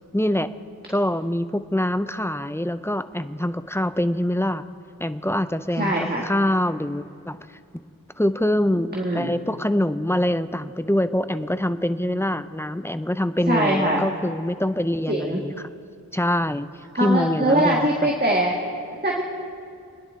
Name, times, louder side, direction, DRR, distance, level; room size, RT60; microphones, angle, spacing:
voice 1, 0.1-0.5 0.9-4.6 5.0-7.4 8.2-15.5 16.1-16.7 17.0-17.9, left 1 dB, 5° left, 12 dB, 0.5 m, -24 dB
voice 2, 5.8-6.2 8.9-9.3 13.5-14.0 15.1-15.4 16.9-18.6 19.0-19.2, right 1 dB, 25° right, -1 dB, 1.7 m, -22 dB
28.0 x 10.5 x 3.7 m, 2.4 s
wide cardioid pair, 40°, 35 cm